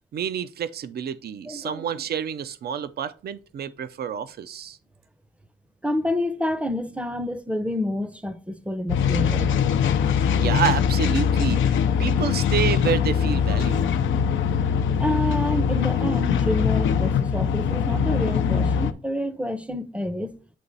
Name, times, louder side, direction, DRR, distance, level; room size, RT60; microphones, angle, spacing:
voice 1, 0.1-4.8 10.4-13.9, right 8 dB, 55° right, 0.5 m, -28 dB
voice 2, 1.5-1.9 5.8-9.5 15.0-20.4, left 1 dB, 5° right, 0.6 m, -28 dB
sound 1, 8.9-18.9, left 7 dB, 75° left, 0.5 m, -22 dB
8.2 x 2.9 x 3.9 m
cardioid pair, 70°, 20 cm